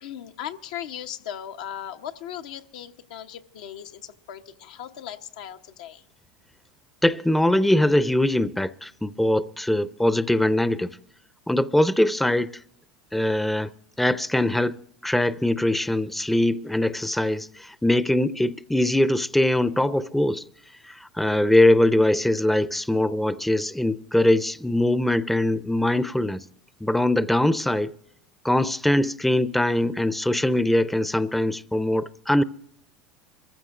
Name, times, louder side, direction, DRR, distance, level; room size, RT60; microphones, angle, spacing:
voice 1, 0.0-6.0, left 10 dB, 75° left, 0.9 m, -38 dB
voice 2, 7.0-11.0 11.5-12.5 13.1-13.7 14.0-14.8 15.0-20.4 20.8-26.4 26.8-27.9 28.4-32.4, left 1 dB, 5° left, 0.6 m, -22 dB
25.5 x 15.0 x 2.5 m
hypercardioid pair, 90°, 4 cm